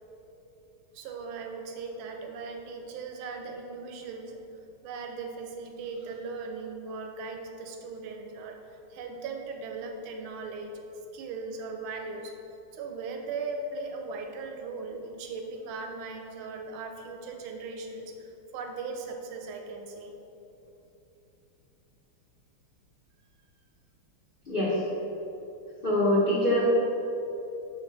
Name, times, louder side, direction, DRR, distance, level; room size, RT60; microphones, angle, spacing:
voice 1, 0.9-4.4 4.8-8.6 8.9-10.8 11.1-12.4 12.7-20.2, right 4 dB, 80° right, 3 dB, 1.4 m, -38 dB
voice 2, 24.5-24.8 25.8-26.6, left 1 dB, 70° left, -7 dB, 0.5 m, -24 dB
6.1 x 3.9 x 4.6 m, 3.0 s
omnidirectional pair, 2.4 m